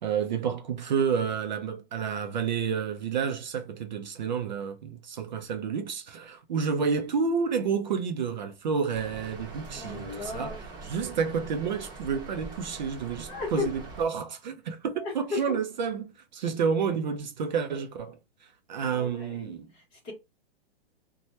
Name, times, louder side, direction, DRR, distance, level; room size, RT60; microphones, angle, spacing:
voice 1, 0.0-10.6 10.8-18.2 18.7-19.7, right 6 dB, 45° right, 0.5 m, -30 dB
Rain, 8.9-14.0, right 3 dB, 15° right, 1.3 m, -43 dB
voice 2, 9.7-10.7 13.2-13.7 14.9-15.6 18.8-20.1, left 4 dB, 15° left, 0.8 m, -36 dB
2.7 x 2.1 x 3.1 m
hypercardioid pair, 170°, 32 cm